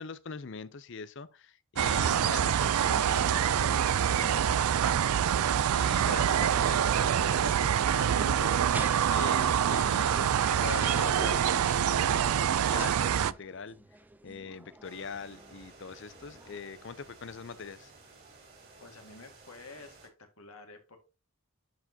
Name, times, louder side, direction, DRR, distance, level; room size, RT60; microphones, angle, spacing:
voice 1, 0.0-5.1 5.7-11.8 12.2-13.8 14.2-17.9, left 5 dB, 55° left, 0.6 m, -43 dB
sound 1, 1.8-13.3, right 9 dB, 80° right, 0.4 m, -26 dB
sound 2, 3.6-16.6, right 1 dB, 10° right, 0.5 m, -48 dB
sound 3, 14.8-20.1, right 3 dB, 40° right, 2.9 m, -55 dB
voice 2, 18.8-21.0, left 3 dB, 75° left, 1.9 m, -50 dB
10.5 x 4.6 x 2.8 m
head